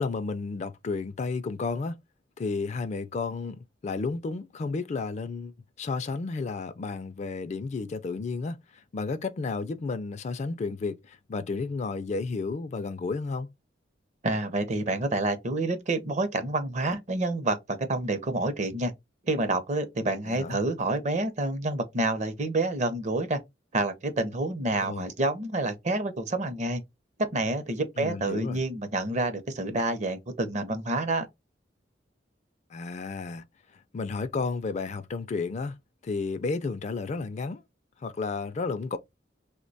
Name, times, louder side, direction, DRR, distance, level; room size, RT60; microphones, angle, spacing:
voice 1, 0.0-2.0 2.4-13.5 20.3-20.6 24.7-25.1 28.0-28.6 32.7-33.4 33.9-35.8 36.0-37.6 38.0-39.0, left 4 dB, 40° left, 0.3 m, -32 dB
voice 2, 14.2-18.9 19.3-23.4 23.7-26.8 27.3-31.3, right 2 dB, 40° right, 0.6 m, -28 dB
3.0 x 2.1 x 3.9 m
head